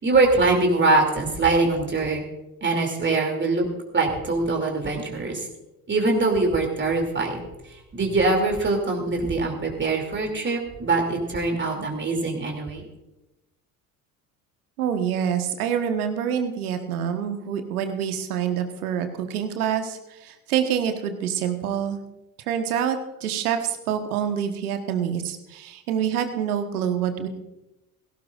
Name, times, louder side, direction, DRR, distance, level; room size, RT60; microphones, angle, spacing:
voice 1, 0.0-2.2 2.6-3.7 3.9-5.5 5.9-7.4 7.7-12.9, right 3 dB, 25° right, 1 dB, 2.8 m, -23 dB
voice 2, 14.8-22.0 22.5-27.3, right 8 dB, 75° right, 7 dB, 1.4 m, -26 dB
17.5 x 16.5 x 2.5 m, 0.97 s
figure-of-eight pair, 60°, 45 cm